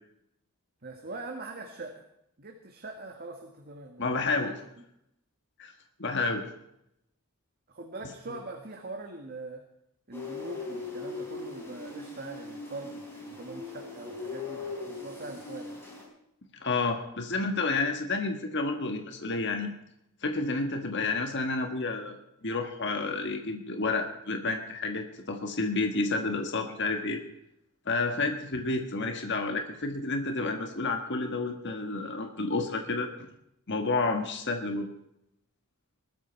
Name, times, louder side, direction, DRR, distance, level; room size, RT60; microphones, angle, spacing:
voice 1, 0.8-2.0 2.4-4.5 7.7-9.6 10.1-15.8 28.1-28.3, right 2 dB, 45° right, 3 dB, 1.7 m, -42 dB
voice 2, 4.0-4.5 5.6-5.7 6.0-6.4 16.6-19.7 20.2-22.2 22.4-27.2 27.9-33.1 33.7-34.9, left 3 dB, 55° left, 5 dB, 1.6 m, -30 dB
sound 1, 10.1-16.0, left 3 dB, 10° left, 5.2 m, -40 dB
20.0 x 13.5 x 4.5 m, 0.80 s
head